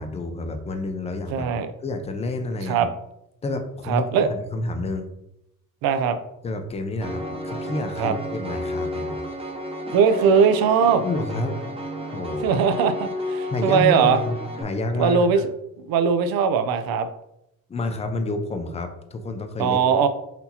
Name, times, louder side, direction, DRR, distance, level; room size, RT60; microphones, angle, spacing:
voice 1, 0.0-1.5 1.8-2.9 3.4-5.0 6.4-9.2 11.0-11.6 12.1-12.5 13.5-15.4 17.7-19.8, left 2 dB, 20° left, 7 dB, 0.4 m, -29 dB
voice 2, 1.3-1.7 2.7-2.9 3.9-4.3 5.8-6.2 8.0-8.1 9.9-11.0 12.4-14.2 15.0-15.4 15.9-17.1 19.6-20.1, right 6 dB, 70° right, 9 dB, 0.6 m, -20 dB
Piano, 7.0-14.6, left 1 dB, 15° right, 0.8 m, -32 dB
5.8 x 2.8 x 2.8 m, 0.82 s
cardioid pair, 135°, 37 cm